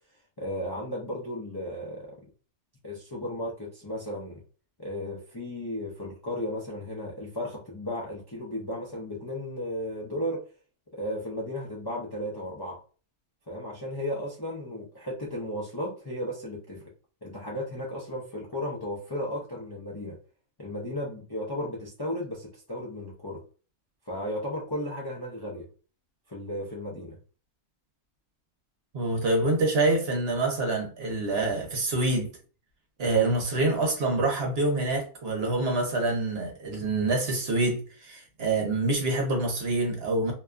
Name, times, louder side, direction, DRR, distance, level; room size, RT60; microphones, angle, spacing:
voice 1, 0.4-2.0 2.8-4.4 4.8-10.4 10.9-12.8 13.5-16.8 17.2-20.2 20.6-23.4 24.1-25.7 26.3-27.2, left 1 dB, 30° left, 0.4 m, -34 dB
voice 2, 28.9-32.3 33.0-40.3, right 2 dB, 55° right, 0.9 m, -26 dB
2.7 x 2.3 x 2.3 m
omnidirectional pair, 1.3 m